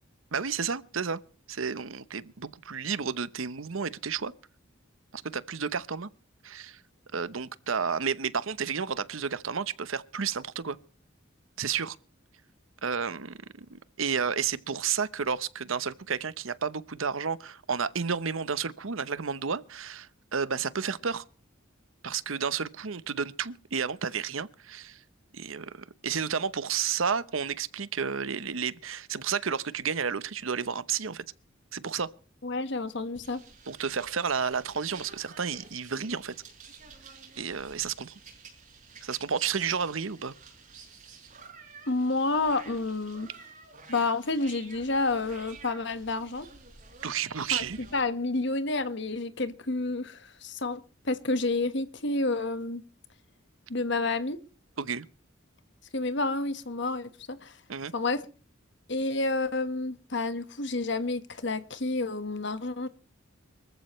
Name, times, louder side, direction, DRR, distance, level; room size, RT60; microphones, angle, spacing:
voice 1, 0.3-1.2 1.5-4.3 5.1-6.1 6.4-6.8 7.1-10.8 11.6-12.0 12.8-21.2 22.0-25.0 25.3-31.2 31.7-32.1 33.7-36.3 37.4-38.1 39.0-40.3 47.0-47.8 54.8-55.1 57.7-57.9, right 6 dB, 80° right, 0.9 m, -31 dB
voice 2, 32.4-33.4 41.9-43.3 43.9-46.5 47.5-47.6 47.9-52.8 53.7-54.4 55.9-57.5 57.9-58.2 58.9-62.9, left 3 dB, 60° left, 1.4 m, -29 dB
sound 1, 33.1-48.0, right 5 dB, 40° right, 6.4 m, -51 dB
24.5 x 14.5 x 3.2 m
head